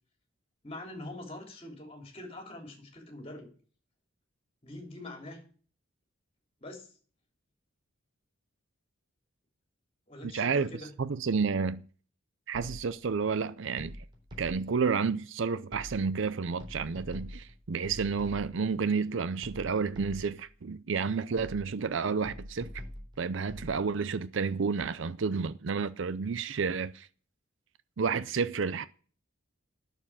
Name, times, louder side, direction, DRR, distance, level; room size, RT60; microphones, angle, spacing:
voice 1, 0.6-3.5 4.6-5.4 6.6-6.9 10.1-10.9, left 1 dB, 30° left, 3.2 m, -44 dB
voice 2, 10.2-10.7 11.0-11.8 12.5-14.0 14.4-22.7 23.2-27.1 28.0-28.9, right 5 dB, 60° right, 0.5 m, -30 dB
sound 1, 12.5-13.1 13.8-14.8 15.7-16.2 16.6-18.7 19.4-20.5 21.4-21.9 22.3-23.8, left 1 dB, 20° right, 3.6 m, -45 dB
9.7 x 6.9 x 8.8 m
head